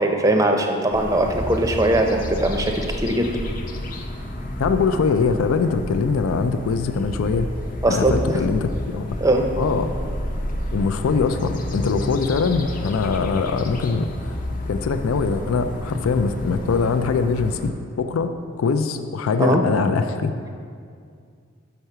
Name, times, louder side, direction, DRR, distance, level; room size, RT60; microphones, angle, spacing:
voice 1, 0.0-3.3 7.8-8.4 9.2-9.4 19.4-19.6, right 1 dB, 15° right, 3 dB, 0.5 m, -20 dB
sound 1, 0.9-17.7, left 1 dB, 40° left, 0.6 m, -30 dB
voice 2, 4.6-7.5 7.9-9.2 9.6-9.9 10.7-14.4 14.7-18.3 18.6-20.3, left 5 dB, 85° left, 9 dB, 0.4 m, -22 dB
6.0 x 5.5 x 6.7 m, 2.2 s
head